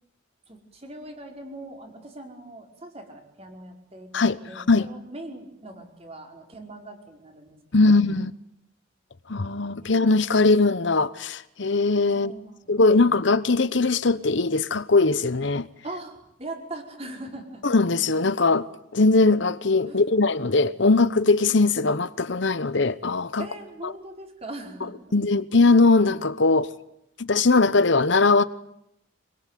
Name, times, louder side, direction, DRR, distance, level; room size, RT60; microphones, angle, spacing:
voice 1, 0.5-7.5 7.8-8.0 9.8-9.9 12.1-13.2 15.8-17.6 19.8-20.1 23.4-25.0, right 1 dB, 30° right, 5.1 m, -41 dB
voice 2, 4.1-4.9 7.7-8.3 9.3-12.3 12.7-15.7 17.6-18.7 18.9-23.4 25.1-26.7 27.2-28.4, left 3 dB, 65° left, 1.0 m, -20 dB
26.0 x 22.5 x 9.4 m
head